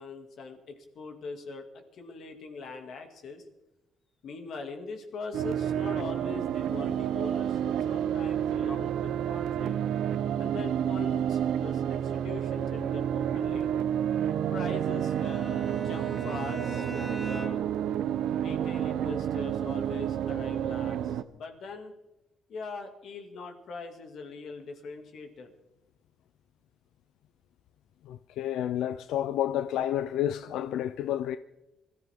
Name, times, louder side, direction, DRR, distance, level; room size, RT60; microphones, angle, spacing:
voice 1, 0.0-1.7 1.9-3.5 4.2-9.9 10.4-13.7 14.5-17.6 18.4-22.0 22.5-25.5, left 4 dB, 60° left, 2.3 m, -42 dB
sound 1, 5.3-21.2, right 10 dB, 80° right, 0.7 m, -30 dB
Bowed string instrument, 14.7-17.8, right 1 dB, 5° right, 2.8 m, -41 dB
voice 2, 28.1-31.4, left 11 dB, 90° left, 0.5 m, -30 dB
25.5 x 14.0 x 3.7 m
cardioid pair, 140°, 0 cm